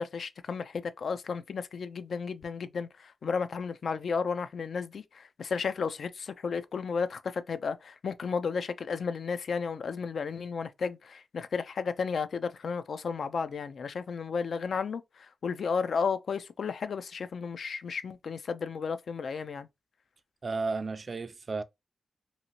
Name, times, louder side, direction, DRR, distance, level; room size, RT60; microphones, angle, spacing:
voice 1, 0.0-19.7, left 5 dB, 75° left, 0.3 m, -33 dB
voice 2, 20.4-21.6, right 3 dB, 50° right, 0.3 m, -33 dB
2.7 x 2.4 x 2.8 m
cardioid pair, 60°, 0 cm